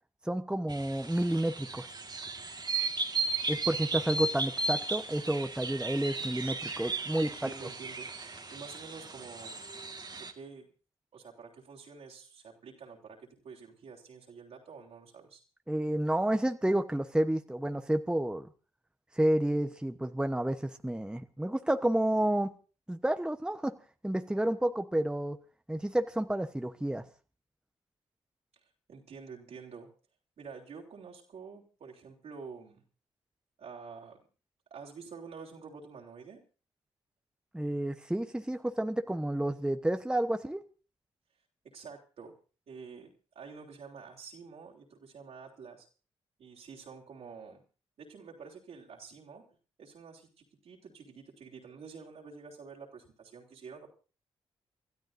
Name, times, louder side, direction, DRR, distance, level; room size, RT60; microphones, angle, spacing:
voice 1, 0.2-1.9 3.5-7.5 15.7-18.5 19.2-22.5 22.9-23.8 24.0-25.4 25.7-27.0 37.5-40.6, right 1 dB, 5° right, 7 dB, 1.0 m, -30 dB
sound 1, 0.7-10.3, right 3 dB, 40° right, 1.7 m, -36 dB
voice 2, 7.2-8.1 8.5-10.7 11.1-15.4 28.9-29.9 30.4-32.8 33.6-34.2 34.7-36.4 41.7-42.3 42.7-45.9 46.4-47.6 48.0-49.4 49.8-53.9, right 5 dB, 75° right, -1 dB, 3.3 m, -48 dB
30.0 x 13.0 x 2.6 m, 0.35 s
supercardioid pair, 50°, 11 cm